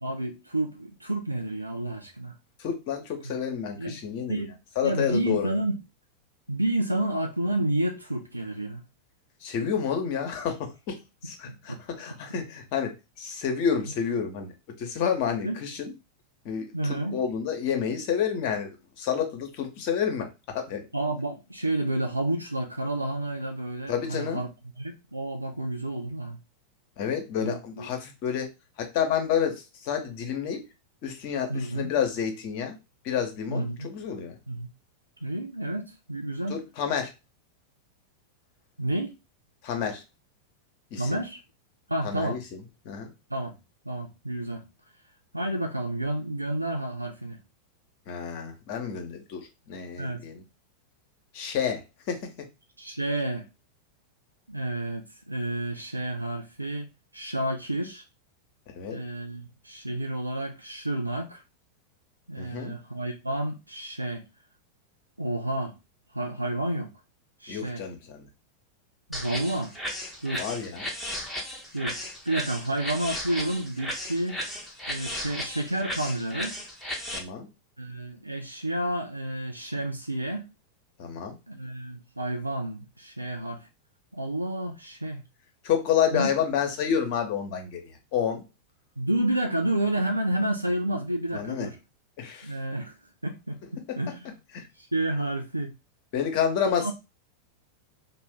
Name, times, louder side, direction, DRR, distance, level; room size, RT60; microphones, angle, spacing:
voice 1, 0.0-2.3 3.2-3.3 3.8-4.0 4.3-4.5 4.8-5.8 6.5-8.8 11.5-11.8 15.4-15.6 16.7-17.2 20.9-24.5 24.8-26.4 27.4-27.9 31.5-31.9 33.5-33.9 34.5-34.7 35.2-36.6 38.8-39.1 41.0-41.4 41.9-42.4 43.3-43.5 43.9-44.6 45.3-47.4 50.0-50.2 52.8-53.5 54.5-56.9 57.1-58.0 58.9-61.4 62.3-64.2 65.2-65.7 66.1-66.9 67.4-67.8 69.1-69.7 70.2-70.5 71.7-72.0 72.3-74.4 74.9-76.6 77.8-80.5 81.5-83.7 84.1-85.2 86.1-86.3 89.0-91.8 92.4-92.9 93.2-94.3 94.8-95.7 96.8-96.9, right 1 dB, 85° right, 0.4 m, -30 dB
voice 2, 2.6-5.6 9.4-15.9 16.4-20.8 23.9-24.4 27.0-28.5 28.8-30.6 31.0-32.8 33.0-34.3 36.5-37.1 39.6-40.0 40.9-41.2 42.0-43.1 48.1-50.4 51.3-51.8 52.1-52.5 58.7-59.0 62.4-62.7 67.5-68.2 70.3-70.9 77.1-77.5 81.0-81.4 85.6-88.4 91.3-91.7 92.2-92.5 94.5-94.7 96.1-96.9, left 7 dB, 45° left, 0.8 m, -29 dB
sound 1, 69.1-77.2, equal, 5° left, 0.8 m, -35 dB
2.5 x 2.2 x 3.4 m
figure-of-eight pair, 90°, 0 cm